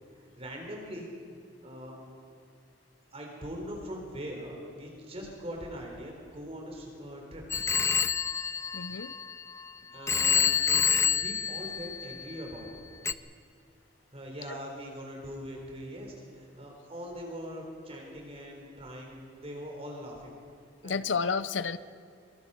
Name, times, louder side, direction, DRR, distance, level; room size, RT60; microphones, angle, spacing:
voice 1, 0.1-1.2 1.6-2.0 3.1-7.5 9.9-12.8 14.1-20.3 20.8-21.0, equal, 30° right, 0 dB, 3.8 m, -42 dB
Telephone, 7.5-9.6 10.1-12.4 13.1-13.2, left 6 dB, 15° left, 0.4 m, -27 dB
voice 2, 8.7-9.1 20.8-21.8, left 5 dB, 70° left, 14 dB, 0.7 m, -30 dB
24.0 x 23.0 x 5.5 m, 2.3 s
head